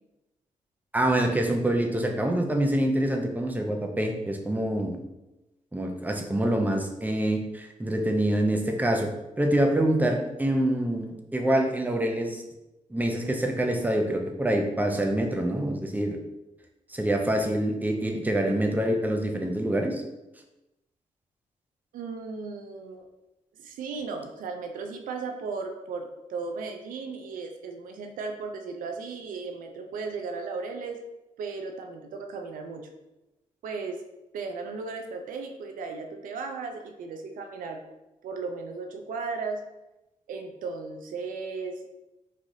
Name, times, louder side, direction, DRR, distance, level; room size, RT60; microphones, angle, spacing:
voice 1, 0.9-5.0 5.7-9.1 9.4-12.4 12.9-16.2 16.9-20.0, right 1 dB, 10° right, 3 dB, 0.6 m, -26 dB
voice 2, 21.9-23.0 23.6-31.0 31.4-32.9 33.6-34.0 34.3-37.8 38.2-39.6 40.3-41.8, right 4 dB, 75° right, 5 dB, 0.4 m, -36 dB
3.3 x 2.3 x 2.6 m, 0.97 s
supercardioid pair, 50°, 14 cm